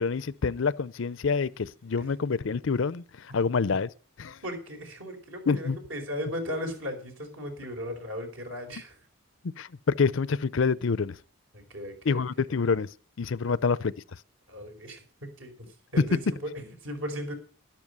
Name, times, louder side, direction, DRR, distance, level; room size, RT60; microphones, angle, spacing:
voice 1, 0.0-3.9 4.2-4.4 5.5-5.8 9.6-9.7 10.0-11.2 12.0-12.9 13.2-13.9 16.0-16.1, left 5 dB, 60° left, 0.5 m, -27 dB
voice 2, 4.4-8.9 11.5-12.2 13.4-13.5 14.5-15.7 15.9-17.3, equal, 65° right, 4.8 m, -37 dB
12.0 x 12.0 x 5.3 m
head